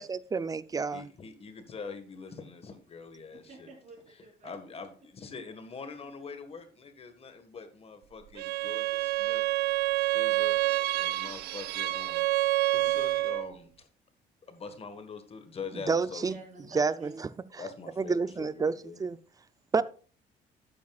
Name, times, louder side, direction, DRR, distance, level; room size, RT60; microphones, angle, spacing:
voice 1, 0.0-1.1 15.9-16.4 16.7-17.1 18.0-18.7 19.0-19.2 19.7-19.8, right 4 dB, 20° right, 0.5 m, -28 dB
voice 2, 0.9-3.7 4.4-9.4 10.0-10.6 11.0-12.2 12.7-13.9 14.5-16.3 17.6-19.0, left 5 dB, 35° left, 1.5 m, -44 dB
voice 3, 3.3-4.5 6.0-6.1 16.3-17.2, right 3 dB, 50° right, 3.6 m, -49 dB
Bowed string instrument, 8.4-13.5, right 17 dB, 75° right, 0.5 m, -28 dB
12.0 x 8.6 x 2.4 m
cardioid pair, 110°, 17 cm